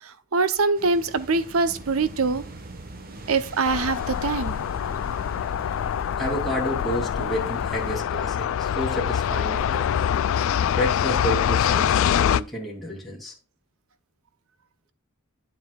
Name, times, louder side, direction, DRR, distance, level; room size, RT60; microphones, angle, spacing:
voice 1, 0.0-2.4 3.3-4.6, right 4 dB, 75° right, 0.7 m, -24 dB
sound 1, 0.7-8.0, right 2 dB, 45° right, 1.2 m, -43 dB
sound 2, 3.6-12.4, left 9 dB, 65° left, 0.3 m, -24 dB
sound 3, 5.6-10.8, left 1 dB, 30° left, 2.0 m, -45 dB
voice 2, 6.2-10.1 10.6-13.3, equal, ahead, 3.1 m, -30 dB
9.6 x 7.7 x 2.4 m
head